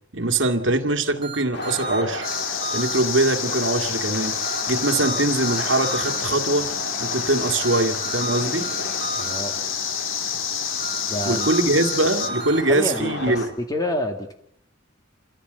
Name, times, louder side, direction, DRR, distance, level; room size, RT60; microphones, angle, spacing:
voice 1, 0.1-2.3 2.7-6.7 7.0-8.7 11.3-13.5, right 2 dB, 60° right, 2.0 m, -22 dB
sound 1, 1.2-3.0 4.4-6.2 7.6-9.4 10.8-12.6, right 4 dB, 25° right, 1.8 m, -33 dB
sound 2, 1.5-13.5, left 2 dB, 55° left, 3.0 m, -34 dB
sound 3, 2.2-12.3, left 8 dB, 75° left, 1.9 m, -28 dB
voice 2, 9.2-9.6 11.1-11.5 12.7-14.3, equal, 20° left, 2.2 m, -28 dB
27.5 x 15.0 x 8.0 m
head